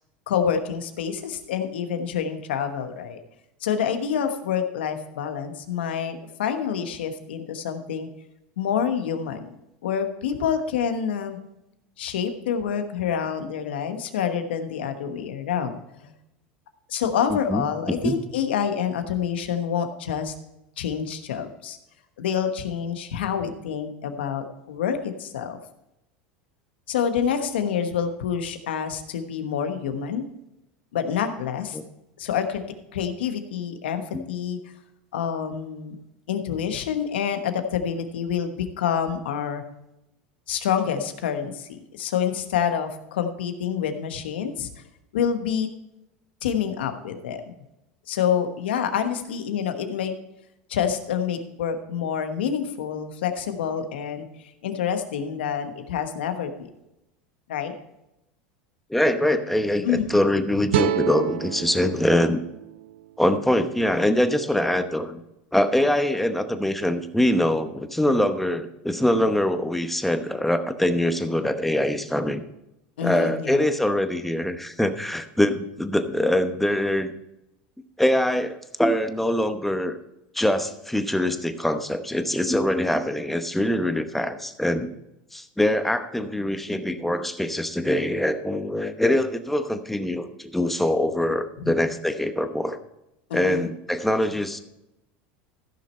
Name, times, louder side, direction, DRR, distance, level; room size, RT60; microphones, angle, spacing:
voice 1, 0.3-3.2 3.6-8.1 8.6-9.5 9.8-11.4 12.0-15.8 16.0-16.1 16.9-20.3 20.8-21.8 22.2-25.6 26.9-30.2 30.9-31.8 32.2-32.6 32.9-34.6 35.1-36.0 36.3-39.6 40.5-44.7 45.1-45.7 46.4-47.6 48.1-50.1 50.7-54.3 54.6-56.7 57.5-57.7 59.8-60.2 73.0-73.6 91.6-91.7 93.3-93.7, left 8 dB, 90° left, 8 dB, 1.2 m, -27 dB
voice 2, 17.3-17.7 18.0-18.1 31.7-31.8 34.1-34.2 58.9-62.4 63.2-65.2 65.5-72.4 73.0-77.1 78.0-80.0 80.3-84.9 85.3-92.8 93.3-94.6, left 1 dB, 5° left, 8 dB, 0.9 m, -23 dB
sound 1, 60.7-63.9, right 12 dB, 90° right, 0.4 m, -29 dB
14.5 x 6.2 x 4.3 m, 0.88 s
supercardioid pair, 110°, 6 cm